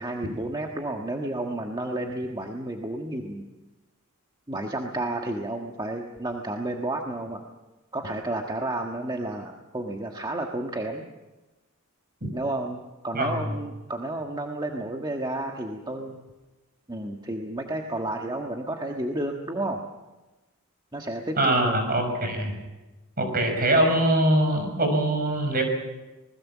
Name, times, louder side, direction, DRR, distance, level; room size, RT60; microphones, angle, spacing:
voice 1, 0.0-3.4 4.5-7.4 7.9-11.1 12.3-16.2 16.9-19.8 20.9-21.8, right 1 dB, 20° right, 2 dB, 1.4 m, -31 dB
voice 2, 13.1-13.4 21.4-22.5 23.2-25.6, right 1 dB, 45° right, 5 dB, 6.1 m, -23 dB
26.5 x 20.0 x 7.3 m, 1.1 s
head